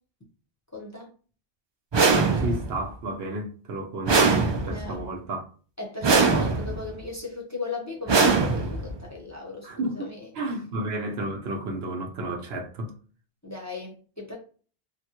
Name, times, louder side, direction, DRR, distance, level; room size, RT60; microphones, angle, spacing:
voice 1, 0.7-1.1 4.6-5.0 5.8-10.3 13.4-14.4, left 3 dB, 15° left, 0.8 m, -36 dB
sound 1, 1.9-2.8 4.1-5.0 6.0-6.8 8.1-9.0, right 4 dB, 45° right, 0.3 m, -22 dB
voice 2, 2.3-4.4 4.7-5.4 9.6-12.9, right 1 dB, 70° right, 0.9 m, -32 dB
3.5 x 2.2 x 2.9 m
omnidirectional pair, 1.1 m